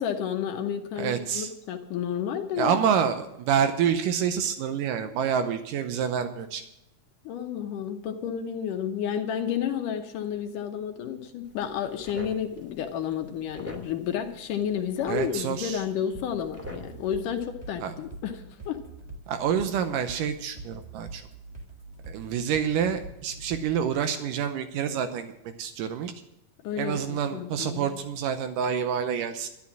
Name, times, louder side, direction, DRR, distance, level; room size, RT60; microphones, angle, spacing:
voice 1, 0.0-2.8 7.3-18.8 26.6-28.0, left 9 dB, 80° left, 5 dB, 2.5 m, -31 dB
voice 2, 1.0-1.5 2.6-6.6 15.1-15.8 17.8-17.9 19.3-21.3 22.1-25.3 25.6-26.1 26.8-29.5, right 8 dB, 85° right, 9 dB, 2.4 m, -27 dB
sound 1, 11.4-17.4, left 1 dB, 5° right, 1.8 m, -46 dB
sound 2, 16.1-24.0, right 3 dB, 25° right, 0.9 m, -44 dB
12.5 x 11.0 x 6.0 m, 0.84 s
omnidirectional pair, 3.8 m